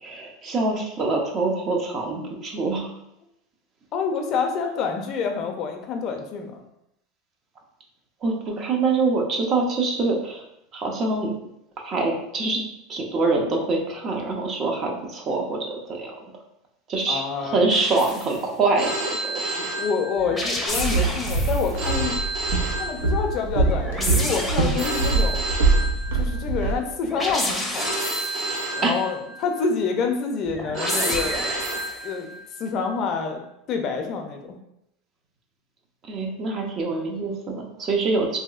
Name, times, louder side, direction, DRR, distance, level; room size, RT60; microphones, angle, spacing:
voice 1, 0.0-2.9 8.2-10.4 10.7-11.3 11.8-12.6 12.9-16.1 16.9-19.7 28.8-28.9 36.1-38.4, right 3 dB, 40° right, 1 dB, 0.6 m, -25 dB
voice 2, 3.9-6.6 17.1-17.7 19.8-22.2 22.8-25.4 26.1-28.0 28.7-31.4 32.0-32.3 32.6-33.4 33.7-34.6, left 5 dB, 45° left, 4 dB, 0.5 m, -27 dB
sound 1, 17.7-18.4 20.2-21.8 23.6-25.3 27.0-28.6 30.5-32.1, left 1 dB, 5° left, 0.6 m, -30 dB
Telephone, 18.8-20.6 21.8-23.6 24.7-26.6 27.7-29.6 30.7-32.6, right 2 dB, 60° right, 1.0 m, -30 dB
Walk footsteps, 20.7-26.8, right 3 dB, 90° right, 0.4 m, -24 dB
3.0 x 2.7 x 2.4 m, 0.81 s
supercardioid pair, 115°, 0 cm